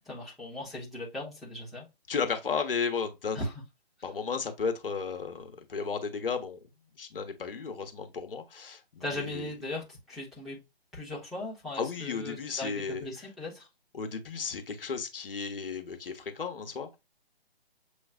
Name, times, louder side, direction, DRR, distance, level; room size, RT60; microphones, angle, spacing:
voice 1, 0.0-1.9 3.3-3.5 9.0-10.6 10.9-13.7, left 1 dB, ahead, 1.0 m, -38 dB
voice 2, 2.1-3.5 4.0-6.6 7.0-9.5 11.8-13.1 13.9-17.0, left 5 dB, 60° left, 1.1 m, -34 dB
7.1 x 3.1 x 2.4 m
figure-of-eight pair, 150°, 31 cm